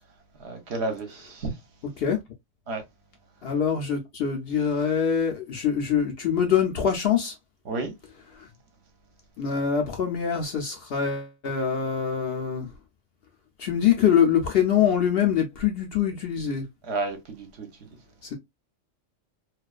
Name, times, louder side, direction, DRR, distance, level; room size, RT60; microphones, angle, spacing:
voice 1, 0.4-1.6 2.7-2.8 7.7-7.9 16.9-17.7, right 3 dB, 60° right, 0.9 m, -31 dB
voice 2, 3.4-7.3 8.4-8.5 9.4-12.7 13.6-16.7 18.2-18.3, left 8 dB, 60° left, 0.7 m, -24 dB
2.4 x 2.3 x 2.3 m
omnidirectional pair, 1.3 m